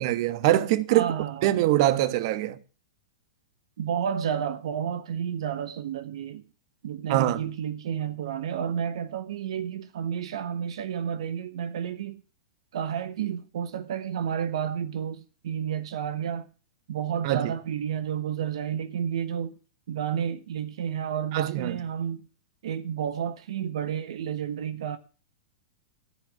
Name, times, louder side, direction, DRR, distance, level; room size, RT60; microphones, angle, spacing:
voice 1, 0.0-1.1 1.4-2.6 7.1-7.4 17.2-17.5 21.3-21.8, right 14 dB, 55° right, 1.3 m, -23 dB
voice 2, 0.9-1.5 3.8-6.4 6.8-12.2 12.7-16.5 16.9-19.6 19.9-22.3 22.6-25.0, right 8 dB, 70° right, 1.2 m, -31 dB
14.5 x 5.3 x 9.7 m
hypercardioid pair, 120°, 3 cm